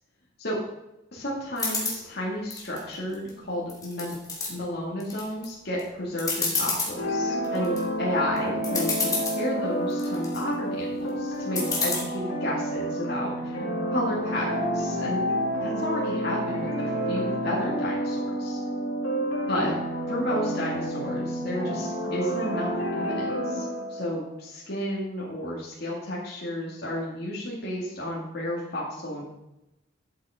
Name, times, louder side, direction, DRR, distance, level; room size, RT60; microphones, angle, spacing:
voice 1, 1.1-4.1 4.5-13.6 13.9-15.2 15.6-18.6 19.5-19.7 20.1-29.3, left 1 dB, 50° left, -5 dB, 2.3 m, -32 dB
sound 1, 1.6-2.0 2.5-3.3 3.7-4.5 5.0-5.5 5.8-5.9 6.2-6.9 7.4-7.8 8.4-8.5 8.6-9.4 9.9-10.4 11.6-12.0, left 3 dB, 20° left, 2.3 m, -28 dB
sound 2, 7.0-24.2, equal, 70° left, 3.5 m, -29 dB
Bowed string instrument, 13.9-18.3, right 3 dB, 75° right, 2.4 m, -42 dB
13.0 x 7.8 x 3.7 m, 0.89 s
head